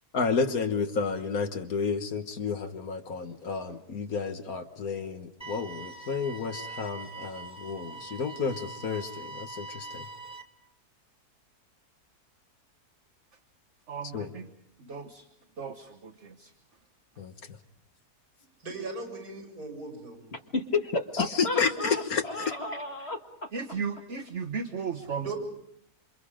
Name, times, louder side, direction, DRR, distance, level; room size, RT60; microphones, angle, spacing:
voice 1, 0.1-10.1 14.1-14.3 17.2-17.3 21.4-22.2, left 5 dB, 65° left, 7 dB, 1.9 m, -31 dB
sound 1, 5.4-10.4, right 3 dB, 5° right, 2.0 m, -43 dB
voice 2, 13.9-14.5 14.8-15.2 15.6-16.5 23.5-25.3, right 5 dB, 50° right, 5 dB, 1.5 m, -35 dB
voice 3, 18.6-20.2 25.2-25.4, right 3 dB, 65° right, 4 dB, 7.1 m, -38 dB
voice 4, 20.3-23.5, left 3 dB, 40° left, 4 dB, 1.8 m, -32 dB
28.0 x 26.0 x 5.1 m, 0.73 s
omnidirectional pair, 1.7 m